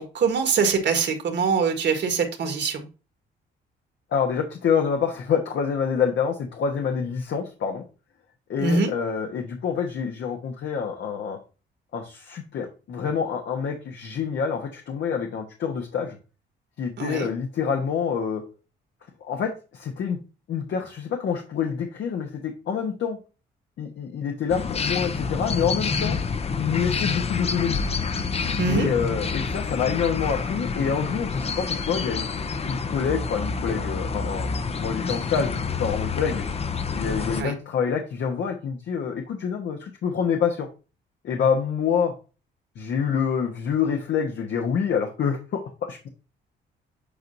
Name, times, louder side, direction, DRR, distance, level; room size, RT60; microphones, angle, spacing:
voice 1, 0.0-2.8 8.6-8.9 17.0-17.3 28.6-28.9 37.4-37.5, right 5 dB, 60° right, 5 dB, 1.6 m, -23 dB
voice 2, 4.1-7.8 8.5-11.4 11.9-16.2 16.8-18.4 19.2-20.2 20.5-23.2 23.8-26.2 26.6-27.8 28.7-32.3 32.6-34.5 34.8-36.4 36.9-40.7 41.2-42.1 42.7-46.1, left 7 dB, 65° left, 3 dB, 1.2 m, -27 dB
sound 1, 24.5-37.4, left 5 dB, 30° left, 0.6 m, -28 dB
8.5 x 4.7 x 2.7 m, 0.33 s
cardioid pair, 90°, 20 cm